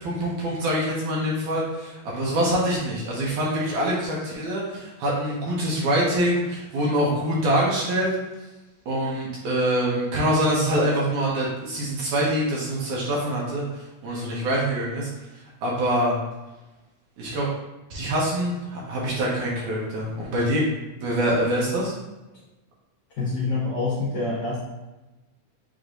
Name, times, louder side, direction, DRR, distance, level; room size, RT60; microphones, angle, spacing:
voice 1, 0.0-8.1 8.9-15.1 15.6-16.2 17.2-17.5 17.9-20.6 21.0-21.9, right 1 dB, 75° right, -4 dB, 2.3 m, -25 dB
voice 2, 23.2-24.6, left 3 dB, 60° left, -11 dB, 2.2 m, -26 dB
6.1 x 3.0 x 2.6 m, 1.1 s
omnidirectional pair, 3.7 m